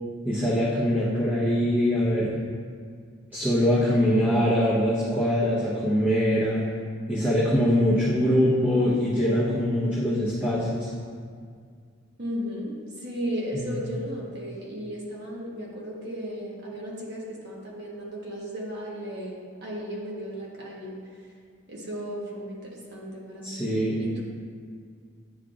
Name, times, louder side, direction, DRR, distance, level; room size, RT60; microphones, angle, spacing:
voice 1, 0.2-2.3 3.3-6.6 7.1-10.9 13.5-13.7 23.4-24.0, equal, 10° right, -10 dB, 0.9 m, -23 dB
voice 2, 4.0-4.5 12.2-21.3 21.7-23.6 24.0-24.2, equal, 55° right, -4 dB, 1.3 m, -35 dB
9.5 x 4.4 x 2.5 m, 2.1 s
head